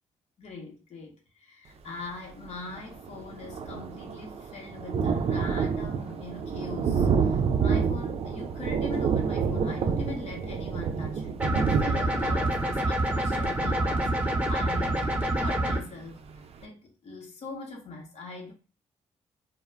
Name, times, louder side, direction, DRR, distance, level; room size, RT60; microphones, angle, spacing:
voice 1, 0.4-16.2 16.6-18.5, left 3 dB, 55° left, 0.8 m, -41 dB
Thunder, 2.4-2.5 2.8-15.4 15.9-16.0 16.3-16.4, right 6 dB, 50° right, 0.4 m, -29 dB
sound 1, 11.4-15.8, right 1 dB, 10° right, 0.8 m, -27 dB
2.2 x 2.0 x 3.2 m
supercardioid pair, 55°, 13 cm